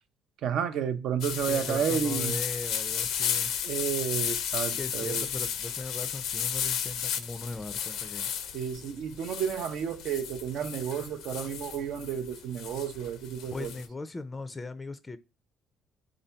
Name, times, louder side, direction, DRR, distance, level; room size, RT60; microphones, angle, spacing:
voice 1, 0.4-2.4 3.6-5.3 8.5-13.7, right 8 dB, 70° right, 0.5 m, -31 dB
sound 1, 1.2-13.9, left 8 dB, 75° left, 0.5 m, -33 dB
voice 2, 1.4-3.5 4.8-8.3 13.5-15.2, left 3 dB, 20° left, 0.4 m, -38 dB
3.6 x 2.7 x 4.3 m
supercardioid pair, 80°, 0 cm